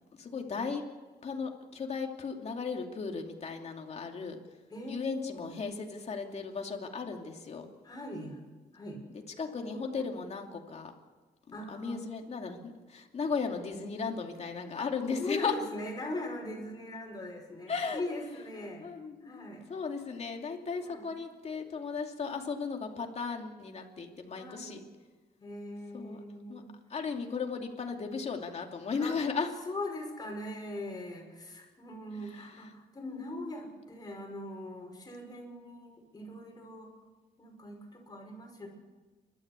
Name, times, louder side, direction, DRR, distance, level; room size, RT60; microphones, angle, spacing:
voice 1, 0.1-0.8 1.2-4.4 4.9-7.6 9.1-10.9 11.5-15.5 17.7-18.0 18.8-24.8 25.9-26.2 26.5-26.6 26.9-29.5 32.3-32.5 33.0-33.5, left 5 dB, 40° left, 3 dB, 2.6 m, -36 dB
voice 2, 4.7-5.6 7.8-8.4 8.7-9.0 9.6-10.1 11.5-12.0 14.8-14.9 15.2-18.8 19.2-19.7 20.8-21.1 24.3-24.9 25.4-26.7 29.0-29.2 29.7-36.9 37.4-38.7, left 1 dB, 25° left, 1 dB, 6.1 m, -41 dB
30.0 x 13.0 x 8.3 m, 1.3 s
cardioid pair, 135°, 16 cm